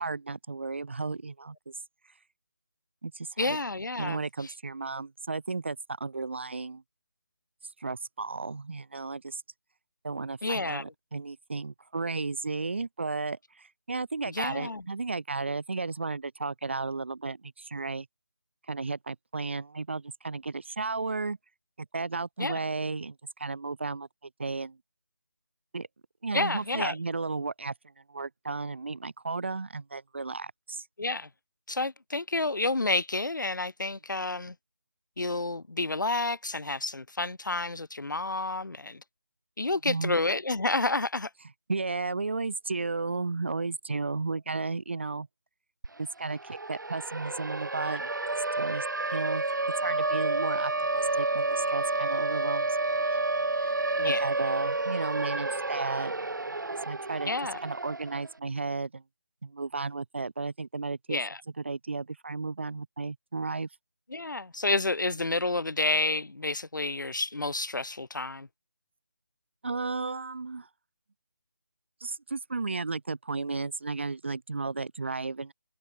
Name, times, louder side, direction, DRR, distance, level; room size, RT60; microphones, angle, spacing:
voice 1, 0.0-1.7 3.0-3.6 4.0-6.8 7.8-9.4 10.0-18.1 18.7-21.4 21.8-24.1 24.4-24.8 25.7-25.9 26.2-27.7 28.1-30.8 39.8-40.2 41.7-45.3 46.0-48.1 48.6-48.8 49.1-49.4 49.8-52.7 53.0-53.2 53.6-53.7 54.0-56.1 56.9-57.3 57.6-59.0 59.4-61.2 61.6-63.7 69.6-70.7 72.0-75.5, right 3 dB, 40° right, 1.7 m, -34 dB
voice 2, 3.4-4.5 10.4-10.9 14.3-14.8 22.4-22.6 26.3-27.0 31.0-31.3 31.7-34.6 35.2-39.0 39.6-41.3 54.0-54.2 57.3-57.6 61.1-61.4 64.1-68.5, left 2 dB, 85° left, 3.7 m, -30 dB
Siren, 45.8-45.9 46.2-58.3, right 2 dB, 85° right, 4.1 m, -30 dB
figure-of-eight pair, 180°, 10 cm